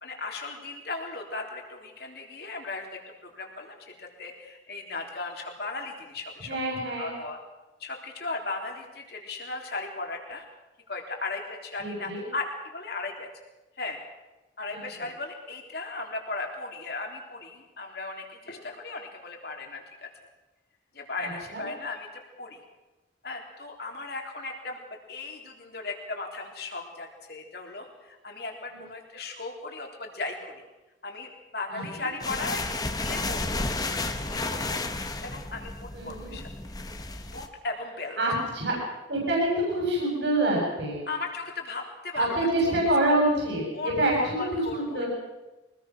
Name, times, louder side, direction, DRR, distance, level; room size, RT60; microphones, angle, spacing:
voice 1, 0.0-6.6 7.0-7.4 7.8-10.4 10.9-13.3 13.8-14.0 14.6-20.1 20.9-22.6 23.2-30.6 31.0-36.7 37.3-38.2 41.1-42.8 43.7-45.1, left 3 dB, 55° left, 2 dB, 3.8 m, -37 dB
voice 2, 6.4-7.1 11.8-12.2 21.2-21.6 31.7-31.8 35.9-36.3 38.2-38.8 39.1-41.0 42.2-45.1, right 1 dB, 65° right, -2 dB, 7.1 m, -26 dB
sound 1, 32.2-37.5, left 2 dB, 20° left, 1.2 m, -32 dB
24.0 x 20.0 x 6.2 m, 1.1 s
head